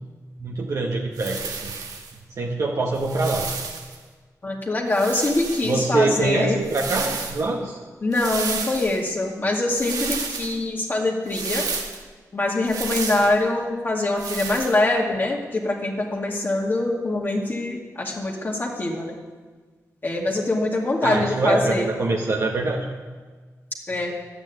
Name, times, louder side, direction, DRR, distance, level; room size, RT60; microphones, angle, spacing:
voice 1, 0.4-1.7 2.4-3.5 5.6-7.8 21.0-22.8, right 3 dB, 60° right, -1 dB, 1.6 m, -24 dB
sound 1, 1.2-2.1 3.0-4.0 4.9-5.8 6.6-7.4 8.1-9.0 9.7-10.5 11.3-12.0 12.7-13.3 14.2-14.8, right 4 dB, 85° right, 1.8 m, -31 dB
voice 2, 4.4-6.6 8.0-11.6 12.3-19.1 20.0-21.9 23.9-24.1, left 2 dB, 35° left, -1 dB, 2.2 m, -24 dB
12.0 x 9.0 x 9.1 m, 1.4 s
wide cardioid pair, 105°, 6 cm